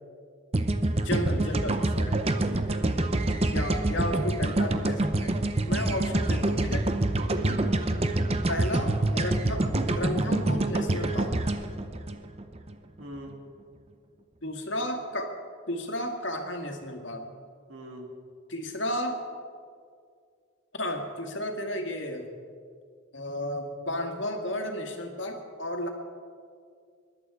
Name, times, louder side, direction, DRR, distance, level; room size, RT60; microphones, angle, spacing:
sound 1, 0.5-12.7, right 2 dB, 30° right, 0.7 m, -26 dB
voice 1, 1.0-2.2 3.5-5.3 5.7-6.9 8.5-11.3 14.4-15.3 15.7-17.2 18.5-19.2 20.7-22.3 23.1-25.9, left 1 dB, 65° left, 3 dB, 1.9 m, -33 dB
voice 2, 2.4-2.9 5.7-6.2 7.4-7.8 13.0-13.4 17.7-18.1, right 1 dB, 80° right, 3 dB, 2.2 m, -43 dB
20.5 x 11.5 x 4.8 m, 2.2 s
head